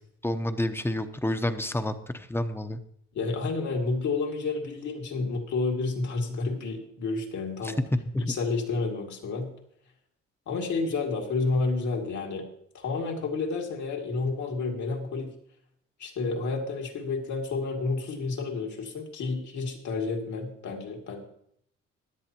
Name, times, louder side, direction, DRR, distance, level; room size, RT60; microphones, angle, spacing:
voice 1, 0.2-2.8 7.6-8.4, left 1 dB, 10° left, 9 dB, 0.8 m, -29 dB
voice 2, 3.1-7.8 8.2-9.5 10.5-12.4 12.7-15.3 16.0-21.2, left 3 dB, 70° left, 0 dB, 2.4 m, -30 dB
16.5 x 10.5 x 3.0 m, 0.71 s
cardioid pair, 90°, 30 cm